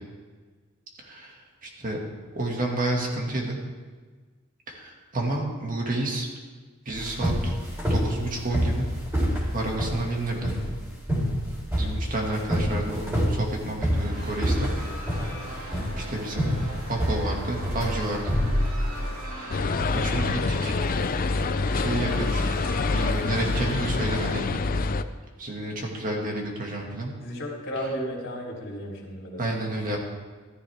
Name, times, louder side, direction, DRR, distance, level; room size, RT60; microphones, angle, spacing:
voice 1, 1.0-1.4 1.6-2.0 2.3-3.6 4.7-6.3 6.9-7.5 7.9-8.9 9.5-10.5 11.8-14.7 15.4-15.7 16.0-16.5 16.9-18.4 19.3-20.7 21.7-22.4 22.9-24.5 25.4-27.1 29.4-30.0, right 2 dB, 40° right, 0 dB, 2.2 m, -30 dB
sound 1, 6.9-19.2, equal, 15° right, 4.0 m, -27 dB
sound 2, 13.9-24.4, equal, 75° right, 3.6 m, -39 dB
sound 3, 19.5-25.0, left 3 dB, 40° left, 0.5 m, -26 dB
voice 2, 27.2-29.4, equal, 55° left, -3 dB, 3.5 m, -33 dB
14.0 x 14.0 x 3.6 m, 1.4 s
head